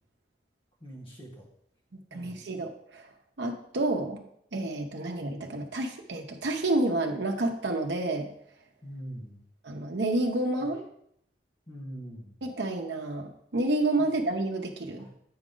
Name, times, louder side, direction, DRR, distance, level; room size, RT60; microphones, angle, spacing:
voice 1, 0.8-1.5 2.1-2.4 8.8-9.4 11.7-12.3 14.0-14.1 15.0-15.1, equal, 30° left, -3 dB, 1.8 m, -43 dB
voice 2, 2.1-3.1 3.4-4.2 4.5-8.3 9.6-10.8 12.4-15.1, right 2 dB, 80° right, 2 dB, 0.8 m, -29 dB
8.6 x 5.0 x 3.8 m, 0.71 s
head